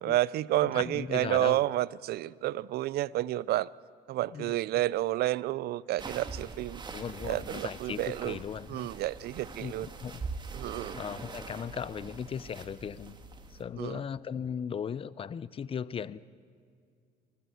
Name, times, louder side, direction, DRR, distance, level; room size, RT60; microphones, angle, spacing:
voice 1, 0.0-3.7 4.1-6.8 7.2-8.4 8.7-9.9 10.5-11.0 13.8-14.0, right 15 dB, 70° right, 0.5 m, -30 dB
voice 2, 0.6-1.6 4.3-4.5 6.9-8.9 9.6-10.2 10.9-13.2 13.5-16.2, left 7 dB, 35° left, 0.6 m, -37 dB
sound 1, 6.0-13.6, right 4 dB, 25° right, 1.9 m, -43 dB
24.0 x 15.5 x 8.4 m
cardioid pair, 110°, 17 cm